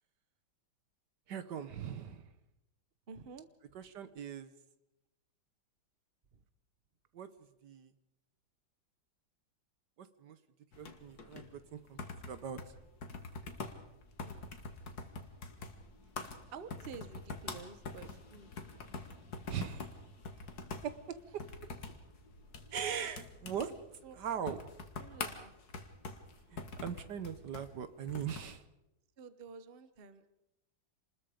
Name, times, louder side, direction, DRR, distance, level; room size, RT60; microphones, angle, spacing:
voice 1, 1.3-2.3 3.7-4.5 7.1-7.3 7.6-7.9 10.0-10.4 10.8-12.0 12.3-12.6 19.5-19.9 20.8-21.2 22.7-23.7 24.1-24.7 26.5-28.6, right 8 dB, 65° right, 12 dB, 1.5 m, -40 dB
voice 2, 3.1-3.5 14.2-14.5 16.5-18.5 24.0-24.2 25.0-25.5 29.2-30.3, right 5 dB, 35° right, 12 dB, 1.0 m, -50 dB
sound 1, 10.7-28.6, left 3 dB, 50° left, 2.2 m, -46 dB
28.0 x 20.5 x 5.1 m, 0.91 s
omnidirectional pair, 2.1 m